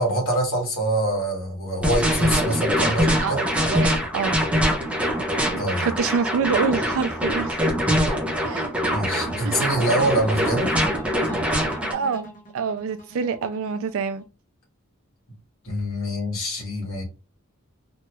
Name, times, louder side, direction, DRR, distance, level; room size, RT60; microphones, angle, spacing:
voice 1, 0.0-3.5 5.6-5.9 8.9-10.7 15.6-17.0, right 1 dB, 65° left, 1.5 m, -25 dB
sound 1, 1.8-11.9, equal, 5° right, 0.6 m, -23 dB
voice 2, 3.2-4.4 5.5-7.6 8.4-8.7 9.4-9.6 11.9-14.2, right 5 dB, 65° right, 0.4 m, -27 dB
sound 2, 9.1-14.2, right 1 dB, 40° left, 1.1 m, -39 dB
3.0 x 2.3 x 3.0 m
head